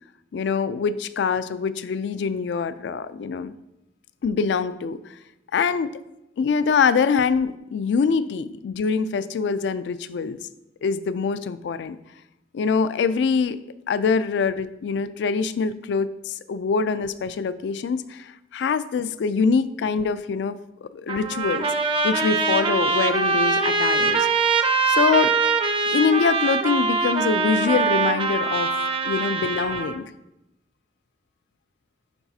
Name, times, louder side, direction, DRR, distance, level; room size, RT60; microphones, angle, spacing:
voice 1, 0.3-3.5 4.2-5.0 5.5-6.0 6.4-10.4 10.8-12.0 12.5-13.6 13.9-21.7 22.0-24.3 24.9-25.4 25.8-28.7 29.0-30.1, left 5 dB, 70° left, 14 dB, 0.3 m, -24 dB
Trumpet, 21.1-30.0, right 4 dB, 30° right, 0.4 m, -23 dB
10.5 x 3.9 x 2.7 m, 0.88 s
head